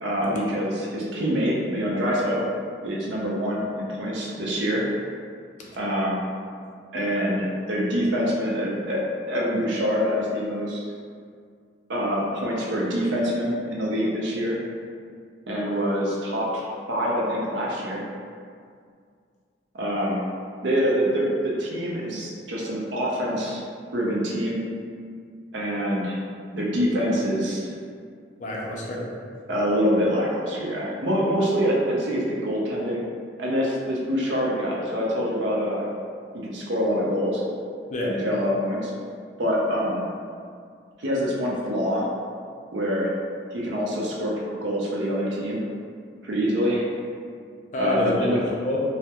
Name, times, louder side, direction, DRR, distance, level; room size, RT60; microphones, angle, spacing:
voice 1, 0.0-2.5 2.8-4.9 5.8-6.2 6.9-9.0 9.3-10.8 11.9-14.6 15.5-18.0 19.7-20.2 20.6-23.6 23.9-24.7 25.5-26.2 26.5-27.6 29.5-33.0 33.4-35.8 36.3-37.4 38.0-38.9 39.4-40.1 41.0-42.0 42.7-43.1 43.5-45.7 46.2-46.8 47.8-48.4, equal, 80° right, -4 dB, 0.5 m, -25 dB
voice 2, 28.4-29.0 37.9-38.2 47.7-48.8, left 1 dB, 45° left, -3 dB, 0.4 m, -28 dB
2.2 x 2.0 x 2.8 m, 2.2 s
head